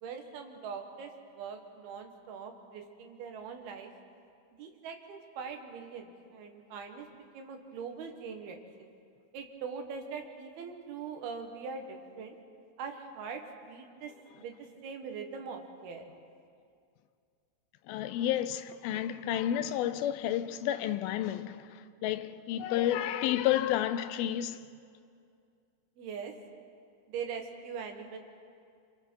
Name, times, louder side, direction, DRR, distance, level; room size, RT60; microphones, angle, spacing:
voice 1, 0.0-3.9 4.6-7.1 7.3-8.9 9.3-12.4 12.8-16.1 26.0-26.3 27.1-28.2, right 6 dB, 85° right, 3.6 m, -42 dB
voice 2, 17.9-24.6, left 11 dB, 80° left, 2.6 m, -31 dB
27.0 x 26.5 x 4.7 m
omnidirectional pair, 4.3 m